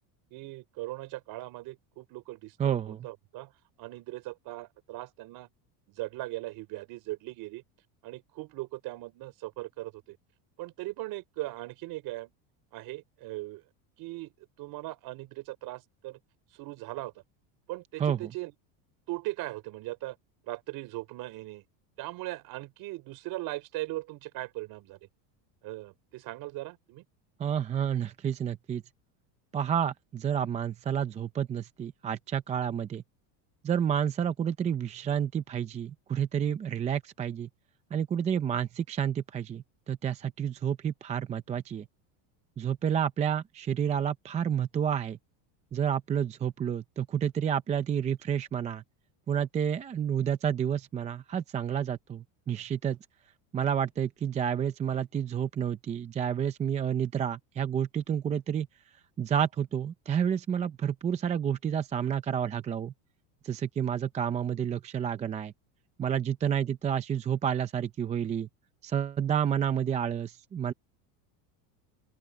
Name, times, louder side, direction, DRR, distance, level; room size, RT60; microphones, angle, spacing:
voice 1, 0.3-3.5 3.8-5.5 5.9-7.6 8.0-10.2 10.6-12.3 12.7-13.6 14.0-14.3 14.6-16.2 16.5-17.1 17.7-18.5 19.1-20.2 20.5-21.6 22.0-25.0 25.6-27.0, right 19 dB, 50° right, 3.9 m, -39 dB
voice 2, 2.6-3.1 18.0-18.3 27.4-28.8 29.5-33.0 33.6-37.5 37.9-41.9 42.6-45.2 45.7-48.8 49.3-53.0 53.5-58.7 59.2-62.9 63.4-65.5 66.0-68.5 68.8-70.7, right 8 dB, 15° right, 0.5 m, -30 dB
open air
cardioid pair, 160°, 48 cm